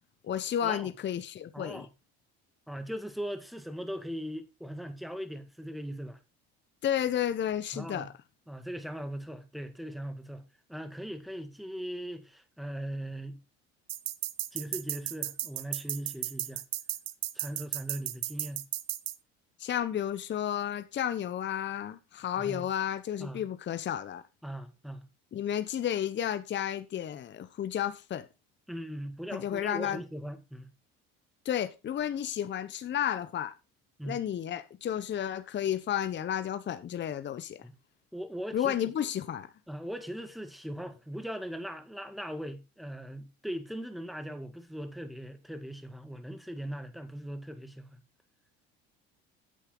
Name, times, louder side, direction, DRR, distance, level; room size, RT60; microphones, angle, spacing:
voice 1, 0.2-1.9 6.8-8.1 19.6-24.2 25.3-28.3 29.3-30.0 31.4-33.5 34.0-37.6 38.5-39.5, left 10 dB, 35° left, 0.9 m, -32 dB
voice 2, 1.5-1.9 2.7-6.2 7.7-8.1 8.5-10.4 10.7-13.4 14.5-16.6 17.3-18.7 22.4-22.7 23.2-23.4 24.4-25.1 28.7-30.7 34.0-34.2 37.6-37.7 38.1-38.9 39.7-47.9, equal, ahead, 1.7 m, -39 dB
sound 1, 13.9-19.1, right 14 dB, 55° right, 0.9 m, -34 dB
9.3 x 8.2 x 3.8 m
supercardioid pair, 90°, 31 cm